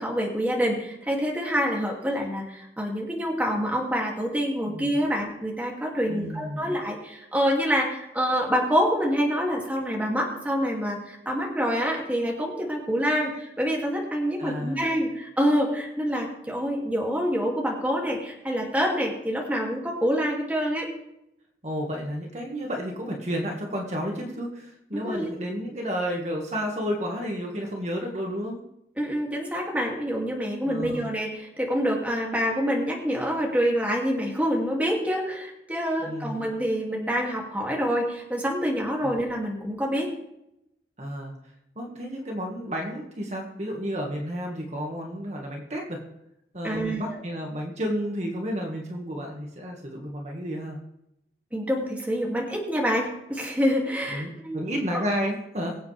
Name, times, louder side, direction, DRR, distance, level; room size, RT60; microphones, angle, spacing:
voice 1, 0.0-20.9 24.9-25.3 29.0-40.1 46.6-47.2 51.5-54.6, equal, 10° right, -2 dB, 2.5 m, -26 dB
voice 2, 4.7-5.1 6.1-6.8 14.4-14.9 21.6-28.6 30.6-31.1 36.0-36.5 39.0-39.2 41.0-41.3 41.8-46.0 46.5-50.8 54.1-55.8, equal, 40° right, 0 dB, 1.8 m, -31 dB
23.0 x 8.1 x 3.4 m, 0.84 s
head